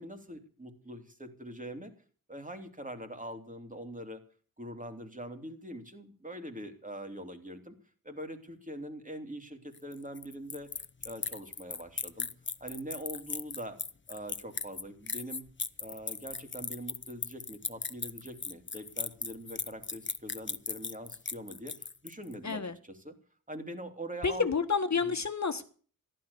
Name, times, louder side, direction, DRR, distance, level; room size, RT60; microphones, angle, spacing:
voice 1, 0.0-1.9 2.3-4.2 4.6-7.7 8.0-12.3 12.6-13.8 14.1-15.4 15.8-23.1 23.5-24.5 24.9-25.1, equal, 20° right, 6 dB, 3.0 m, -43 dB
sound 1, 9.7-22.3, left 4 dB, 35° left, 0.8 m, -37 dB
voice 2, 22.4-22.7 24.2-25.6, left 5 dB, 50° left, 9 dB, 1.5 m, -29 dB
15.0 x 12.0 x 7.0 m, 0.43 s
wide cardioid pair, 85°, 35 cm